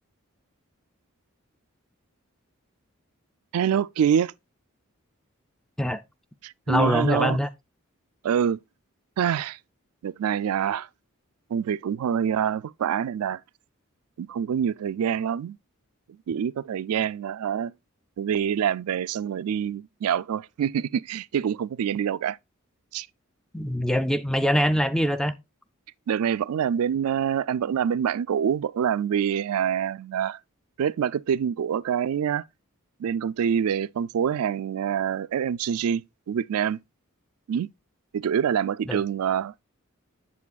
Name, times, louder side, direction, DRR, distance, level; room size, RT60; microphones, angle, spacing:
voice 1, 3.5-4.3 6.4-7.4 8.2-8.6 9.2-9.6 10.0-10.9 11.5-13.4 14.2-15.6 16.3-17.7 18.2-22.4 22.9-23.1 26.1-30.4 30.8-32.4 33.0-36.8 37.5-37.7 38.1-39.6, right 8 dB, 90° right, 0.3 m, -26 dB
voice 2, 6.7-7.5 23.5-25.3 38.9-39.0, equal, 5° left, 0.4 m, -23 dB
8.4 x 7.5 x 2.3 m
head